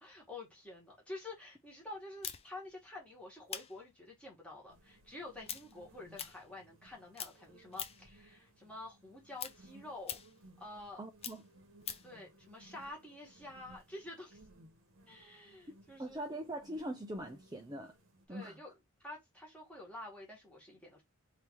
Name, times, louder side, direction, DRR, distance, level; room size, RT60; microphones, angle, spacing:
voice 1, 0.0-10.2 10.6-11.0 12.0-14.4 15.1-16.2 18.3-18.7 19.0-21.0, left 2 dB, 5° left, 1.7 m, -49 dB
sound 1, 2.2-6.9 7.1-8.2 8.5-12.2, left 9 dB, 25° left, 0.5 m, -45 dB
sound 2, 4.7-18.3, right 1 dB, 60° right, 1.1 m, -62 dB
voice 2, 11.0-11.4 16.0-17.9 18.3-18.5, right 1 dB, 15° right, 0.6 m, -42 dB
3.6 x 2.8 x 4.5 m
head